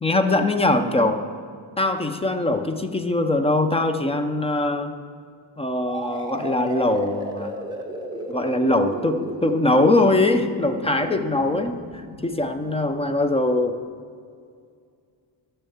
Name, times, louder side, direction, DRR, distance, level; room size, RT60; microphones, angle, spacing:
voice 1, 0.0-1.2 1.8-4.9 5.6-7.7 8.3-13.8, left 2 dB, 15° left, 8 dB, 0.5 m, -22 dB
sound 1, 5.9-13.5, right 1 dB, 10° right, 1.1 m, -35 dB
12.5 x 5.6 x 7.0 m, 2.2 s
cardioid pair, 140°, 47 cm